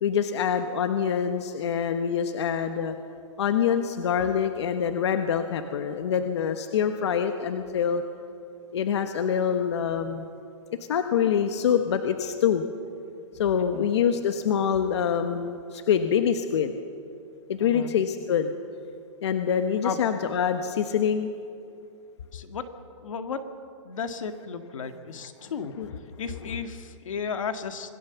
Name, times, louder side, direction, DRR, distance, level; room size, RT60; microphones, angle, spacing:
voice 1, 0.0-3.0 3.4-8.0 8.7-10.3 10.9-12.6 13.4-16.7 17.5-18.5 19.2-21.3 25.4-25.5 25.8-25.9, left 8 dB, 60° left, 7 dB, 1.2 m, -25 dB
voice 2, 13.6-13.9 17.6-17.9 19.8-20.3 22.3-22.6 23.0-23.4 23.8-25.7 26.2-27.9, left 5 dB, 80° left, 7 dB, 1.9 m, -34 dB
26.0 x 18.0 x 7.1 m, 2.6 s
hypercardioid pair, 170°, 17 cm